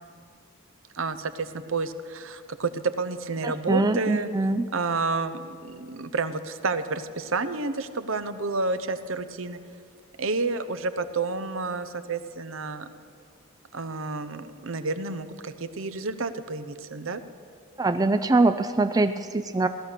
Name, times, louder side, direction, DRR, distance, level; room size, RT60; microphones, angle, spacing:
voice 1, 0.9-4.3 4.7-9.6 10.2-12.9 13.7-17.2, right 3 dB, 65° right, 11 dB, 0.8 m, -30 dB
voice 2, 3.4-4.7 17.8-19.7, right 2 dB, 15° right, 8 dB, 0.4 m, -23 dB
17.0 x 12.0 x 6.7 m, 2.2 s
head